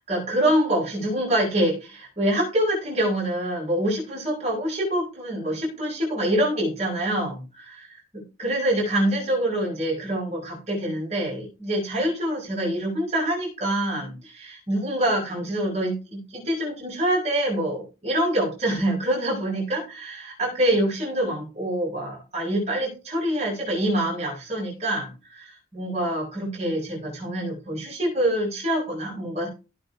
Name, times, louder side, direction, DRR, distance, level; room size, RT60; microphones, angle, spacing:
voice 1, 0.1-7.4 7.7-7.8 8.1-29.5, right 1 dB, 35° right, -3 dB, 6.1 m, -25 dB
17.0 x 6.6 x 3.5 m, 0.31 s
head